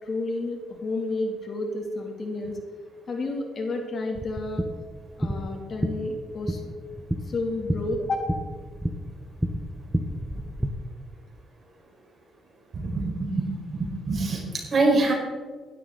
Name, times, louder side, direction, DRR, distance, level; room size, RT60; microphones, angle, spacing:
voice 1, 0.0-2.6 3.1-4.7 5.2-6.6 7.3-8.3, left 2 dB, 50° left, 2 dB, 2.7 m, -30 dB
sound 1, 4.2-10.7, right 1 dB, 10° right, 1.2 m, -31 dB
voice 2, 12.7-14.4 14.7-15.1, right 2 dB, 45° right, -1 dB, 4.9 m, -24 dB
15.5 x 12.0 x 4.0 m, 1.5 s
cardioid pair, 90°, 0 cm